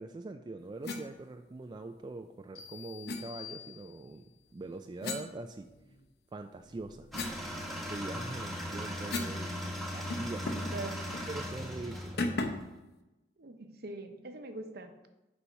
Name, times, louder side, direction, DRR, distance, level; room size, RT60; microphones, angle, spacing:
voice 1, 0.0-5.7 6.3-7.1 7.9-9.5 9.9-10.6 11.3-12.2, right 2 dB, 25° right, 6 dB, 0.3 m, -43 dB
sound 1, 0.8-1.1 3.1-3.2 5.0-6.1 6.5-9.4 9.7-9.8 10.1-10.8 11.1-11.3 12.2-12.7, left 2 dB, 65° left, 0.8 m, -38 dB
sound 2, 2.6-4.4, left 10 dB, 80° left, 2.3 m, -49 dB
sound 3, 7.1-12.8, equal, ahead, 1.1 m, -39 dB
voice 2, 10.5-11.0 13.4-14.9, right 2 dB, 60° right, 6 dB, 0.9 m, -43 dB
7.0 x 5.4 x 4.7 m, 1.0 s
head